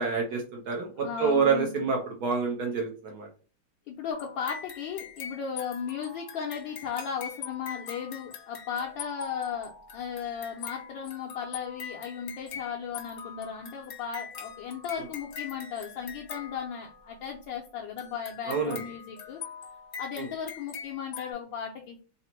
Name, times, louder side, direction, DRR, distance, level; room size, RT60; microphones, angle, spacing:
voice 1, 0.0-3.3 18.5-18.8 20.2-20.3, right 5 dB, 65° right, 1 dB, 1.0 m, -27 dB
voice 2, 1.0-1.7 3.9-19.4 20.0-22.0, left 7 dB, 75° left, -1 dB, 1.3 m, -36 dB
sound 1, 4.1-17.2 18.0-21.3, left 7 dB, 55° left, 1.0 m, -43 dB
3.9 x 2.1 x 4.3 m, 0.37 s
omnidirectional pair, 2.3 m